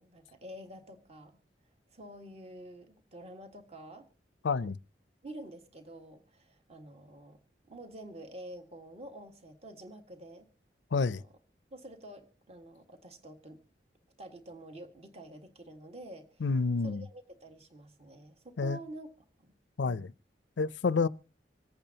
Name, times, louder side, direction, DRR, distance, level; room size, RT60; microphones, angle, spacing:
voice 1, 0.0-1.4 1.9-4.1 5.2-7.4 7.7-10.5 11.1-11.3 11.7-13.6 14.2-16.4 16.8-19.1 19.4-19.5 19.8-20.0, right 1 dB, 35° right, 1.7 m, -48 dB
voice 2, 4.4-4.8 10.9-11.2 16.4-17.0 18.6-18.8 19.8-20.1 20.6-21.1, left 4 dB, 85° left, 0.5 m, -28 dB
26.0 x 8.8 x 2.8 m
head